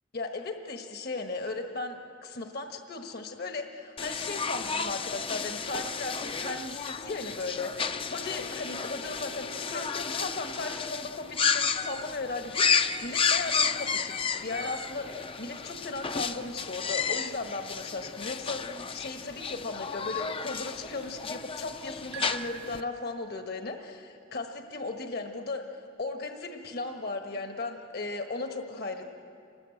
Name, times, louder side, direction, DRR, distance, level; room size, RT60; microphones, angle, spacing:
voice 1, 0.1-25.6 26.0-29.1, left 3 dB, 55° left, 4 dB, 1.4 m, -36 dB
sound 1, 4.0-22.8, left 6 dB, 30° left, 0.6 m, -32 dB
sound 2, 22.1-23.7, right 18 dB, 60° right, 0.6 m, -45 dB
27.5 x 20.0 x 7.8 m, 2.5 s
head